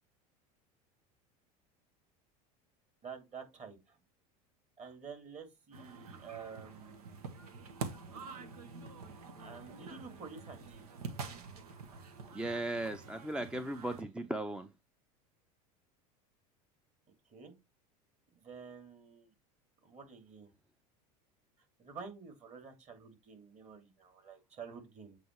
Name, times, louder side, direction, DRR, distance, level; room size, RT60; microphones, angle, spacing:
voice 1, 3.0-4.0 4.8-7.2 9.4-10.9 17.3-17.5 18.3-19.3 19.8-20.5 21.8-25.2, right 6 dB, 35° right, 2.6 m, -49 dB
sound 1, 5.7-14.0, right 4 dB, 85° right, 1.0 m, -46 dB
voice 2, 12.3-14.7, right 1 dB, 5° right, 0.5 m, -37 dB
7.7 x 2.9 x 4.6 m
hypercardioid pair, 95°, 19 cm